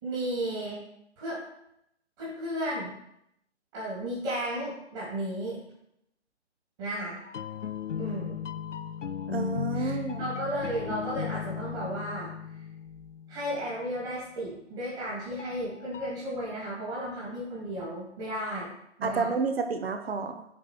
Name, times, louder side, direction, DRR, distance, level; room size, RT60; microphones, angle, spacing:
voice 1, 0.0-0.8 1.2-1.4 2.2-2.9 3.7-5.6 6.8-7.2 8.0-8.4 9.7-12.3 13.3-18.7 19.0-19.3, right 1 dB, 25° right, -8 dB, 2.7 m, -34 dB
sound 1, 7.2-13.9 15.4-16.1, left 7 dB, 90° left, 0.5 m, -36 dB
voice 2, 9.3-10.3 19.0-20.5, right 4 dB, 55° right, 7 dB, 0.9 m, -30 dB
9.0 x 4.4 x 4.7 m, 0.78 s
figure-of-eight pair, 150°, 36 cm